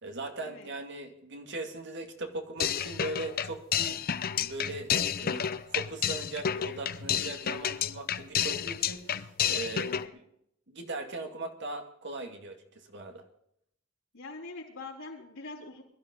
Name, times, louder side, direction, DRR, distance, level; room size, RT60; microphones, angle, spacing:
voice 1, 0.0-4.0 4.4-4.9 5.2-9.9 10.7-13.2, right 2 dB, 60° right, 4 dB, 2.3 m, -39 dB
sound 1, 2.6-10.1, left 8 dB, 45° left, 0.6 m, -30 dB
voice 2, 14.1-15.8, left 3 dB, 90° left, -4 dB, 3.7 m, -43 dB
22.0 x 12.5 x 3.9 m, 0.74 s
head